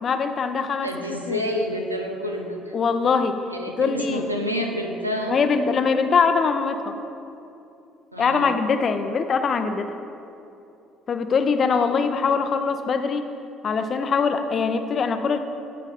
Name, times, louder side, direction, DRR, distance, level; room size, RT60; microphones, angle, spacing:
voice 1, 0.0-0.9 1.3-1.4 2.7-3.4 3.8-4.3 5.3-6.9 8.2-9.9 11.1-13.3 13.6-15.4, left 5 dB, 40° left, 9 dB, 0.6 m, -22 dB
voice 2, 0.8-2.7 3.5-5.3 8.1-8.5, equal, 90° right, 2 dB, 0.7 m, -28 dB
15.0 x 5.3 x 4.3 m, 2.8 s
figure-of-eight pair, 55°, 0 cm